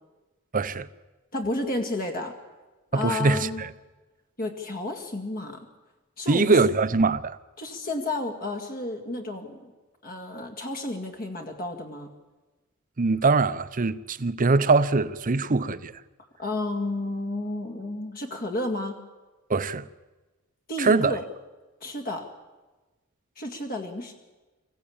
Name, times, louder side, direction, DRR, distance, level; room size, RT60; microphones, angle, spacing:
voice 1, 0.5-0.9 2.9-3.7 6.3-7.4 13.0-15.9 19.5-19.9 20.8-21.2, right 3 dB, 40° right, 0.7 m, -22 dB
voice 2, 1.3-2.3 2.9-3.6 4.4-5.7 6.2-6.6 7.6-9.7 10.0-12.1 16.4-19.0 20.7-21.2 21.8-22.3 23.4-24.1, left 2 dB, 40° left, 2.1 m, -31 dB
24.5 x 15.5 x 8.7 m
head